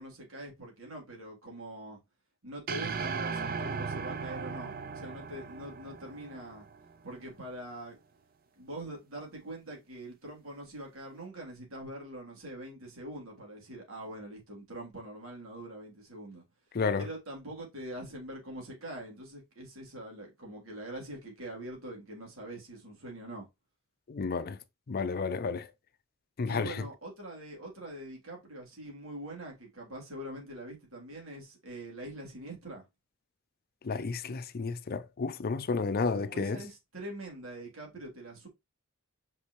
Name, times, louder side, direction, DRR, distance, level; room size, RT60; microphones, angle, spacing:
voice 1, 0.0-2.0 2.4-6.7 7.0-8.0 8.6-16.4 16.9-23.5 26.5-32.8 36.1-38.5, right 1 dB, 65° right, 3.3 m, -43 dB
sound 1, 2.7-7.1, right 5 dB, 45° right, 0.6 m, -37 dB
voice 2, 16.7-17.1 24.1-24.6 24.9-25.7 26.4-26.9 33.8-36.6, left 4 dB, 45° left, 0.5 m, -31 dB
5.7 x 5.4 x 3.2 m
head